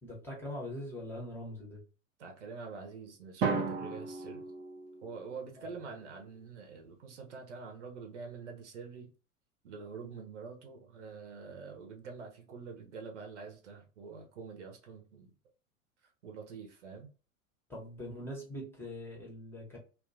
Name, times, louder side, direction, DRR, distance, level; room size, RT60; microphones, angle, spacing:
voice 1, 0.0-1.8 5.6-5.7 17.7-19.8, left 1 dB, 5° left, 0.9 m, -42 dB
voice 2, 2.2-4.5 5.0-9.1 9.6-15.3 16.2-17.1, right 5 dB, 60° right, 0.9 m, -46 dB
Drum, 3.4-5.4, right 4 dB, 20° right, 0.4 m, -35 dB
2.9 x 2.4 x 2.6 m
figure-of-eight pair, 95°, 42 cm